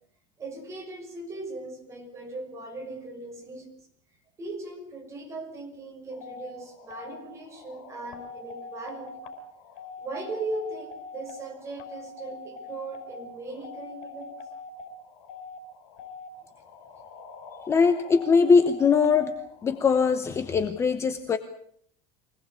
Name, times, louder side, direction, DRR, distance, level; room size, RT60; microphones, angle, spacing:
voice 1, 0.4-3.7 4.4-9.1 10.0-14.6, right 2 dB, 15° right, 1 dB, 6.0 m, -38 dB
sound 1, 6.1-20.1, left 4 dB, 65° left, 5.7 m, -44 dB
voice 2, 17.7-19.3 19.6-21.4, left 5 dB, 15° left, 9 dB, 1.0 m, -21 dB
24.5 x 18.5 x 8.4 m, 0.66 s
cardioid pair, 175°, 17 cm